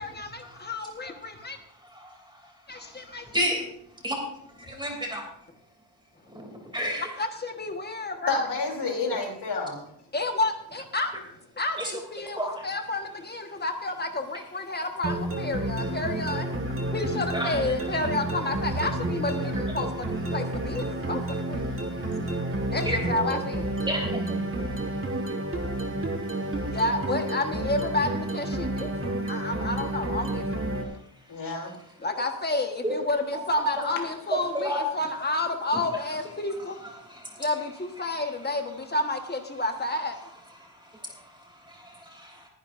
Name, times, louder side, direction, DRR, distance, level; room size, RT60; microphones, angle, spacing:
voice 1, 0.0-1.6 2.7-3.3 4.7-4.8 7.2-8.5 10.1-11.1 11.6-16.5 16.9-20.1 20.3-21.7 22.7-23.7 26.7-30.5 32.0-36.8 37.4-40.2, left 2 dB, 25° left, 4 dB, 1.4 m, -30 dB
voice 2, 4.8-5.2 6.7-7.1 11.8-11.9 12.4-12.6 17.3-17.5 22.8-23.0 23.9-24.2 32.8-32.9 33.3-33.4 34.5-34.9, equal, 10° right, 0 dB, 2.9 m, -28 dB
voice 3, 8.3-9.8 31.3-31.7, left 4 dB, 75° left, 1 dB, 3.2 m, -29 dB
sound 1, 15.0-30.8, right 1 dB, 30° right, 1.7 m, -30 dB
21.0 x 10.5 x 2.6 m, 0.71 s
wide cardioid pair, 170°, 41 cm